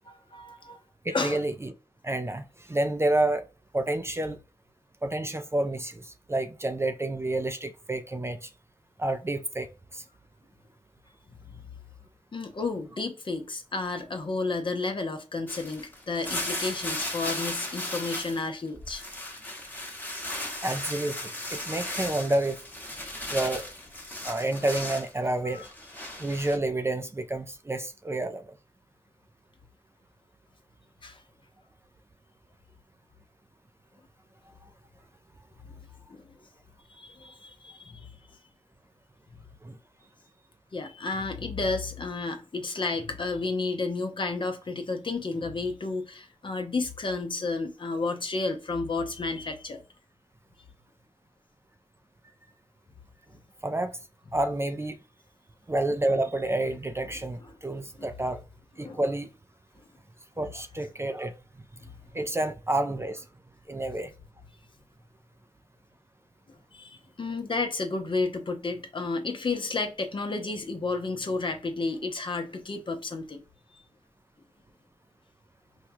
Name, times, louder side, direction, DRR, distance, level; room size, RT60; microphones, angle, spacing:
voice 1, 0.0-0.8 1.1-1.4 11.5-11.6 12.3-19.0 25.4-25.6 31.0-31.2 36.1-36.3 36.9-38.4 39.3-39.4 40.7-49.8 58.0-58.1 58.8-59.0 66.7-73.4 73.7-73.8, left 3 dB, 45° left, 0.8 m, -32 dB
voice 2, 1.0-1.7 2.0-3.5 3.7-4.4 5.0-8.5 9.0-10.0 20.6-22.6 23.3-23.7 24.2-25.6 26.2-28.5 39.6-39.8 53.6-54.0 54.3-55.0 55.7-58.4 58.8-59.3 60.4-61.3 62.1-63.2 63.7-64.1, right 1 dB, 20° right, 0.5 m, -29 dB
sound 1, 15.5-18.5 18.7-25.1 25.5-26.6, left 1 dB, 15° left, 1.1 m, -36 dB
4.5 x 2.3 x 2.7 m
cardioid pair, 50°, 12 cm